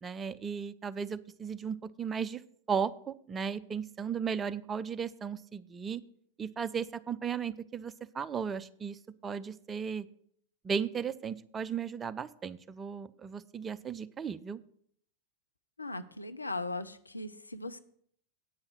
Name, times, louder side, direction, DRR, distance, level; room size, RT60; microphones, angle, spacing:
voice 1, 0.0-2.4 2.7-6.0 6.4-10.1 10.6-14.6, right 6 dB, 20° right, 14 dB, 0.5 m, -35 dB
voice 2, 15.8-17.8, left 2 dB, 80° left, 9 dB, 0.6 m, -38 dB
8.9 x 5.5 x 7.9 m, 0.65 s
figure-of-eight pair, 90°, 0 cm